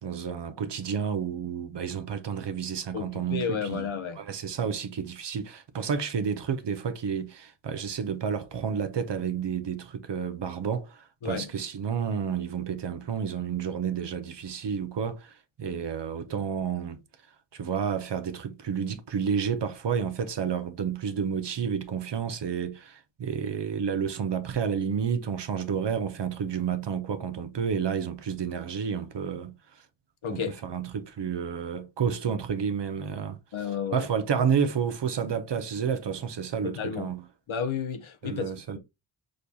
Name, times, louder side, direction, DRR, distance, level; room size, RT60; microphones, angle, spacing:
voice 1, 0.0-3.9 4.2-17.0 17.5-29.8 30.3-33.4 33.9-37.2 38.2-38.8, right 7 dB, 60° right, 0.7 m, -30 dB
voice 2, 2.9-4.2 11.2-11.5 30.2-30.6 33.5-34.1 36.6-37.1 37.5-38.8, left 7 dB, 80° left, 0.7 m, -32 dB
6.3 x 2.3 x 2.7 m
wide cardioid pair, 75°, 47 cm